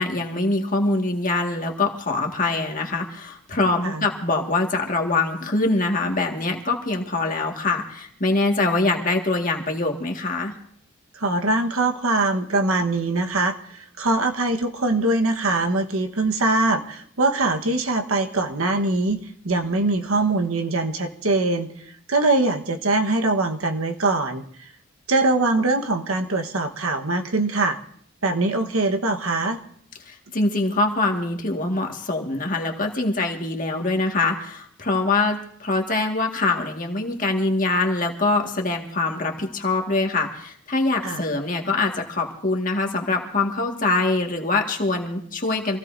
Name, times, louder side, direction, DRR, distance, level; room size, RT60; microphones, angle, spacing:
voice 1, 0.0-10.5 30.0-45.8, left 2 dB, 40° left, 2 dB, 1.8 m, -24 dB
voice 2, 11.1-24.7 25.1-27.8 28.2-29.6 41.0-41.2, right 2 dB, 80° right, 5 dB, 1.3 m, -23 dB
26.0 x 16.5 x 2.7 m, 0.64 s
head